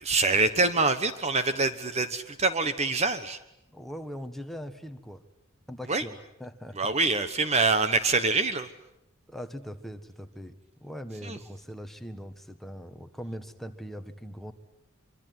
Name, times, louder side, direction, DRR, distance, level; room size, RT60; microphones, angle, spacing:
voice 1, 0.0-3.4 5.9-6.0 6.8-8.7 11.2-11.4, right 3 dB, 30° right, 11 dB, 1.2 m, -25 dB
voice 2, 3.7-5.2 5.7-6.9 9.3-14.5, equal, ahead, 6 dB, 1.6 m, -41 dB
25.0 x 24.5 x 9.5 m, 0.84 s
head